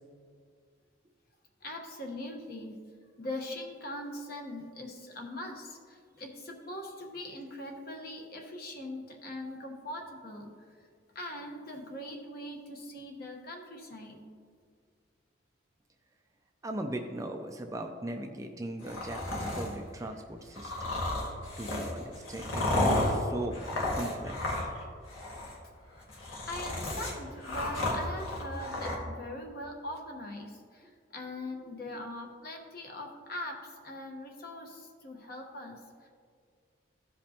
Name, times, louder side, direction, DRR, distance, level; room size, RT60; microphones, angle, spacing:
voice 1, 1.6-2.7 3.2-10.9 11.1-14.2 26.5-36.1, left 1 dB, 50° left, 2 dB, 1.1 m, -41 dB
voice 2, 16.6-20.7 21.6-23.5 24.0-24.6, right 1 dB, 15° right, 4 dB, 0.4 m, -38 dB
sound 1, 18.8-19.7 20.6-24.8 25.1-25.5 26.0-29.0, left 1 dB, 90° left, 1.7 m, -32 dB
15.0 x 5.2 x 2.9 m, 2.1 s
head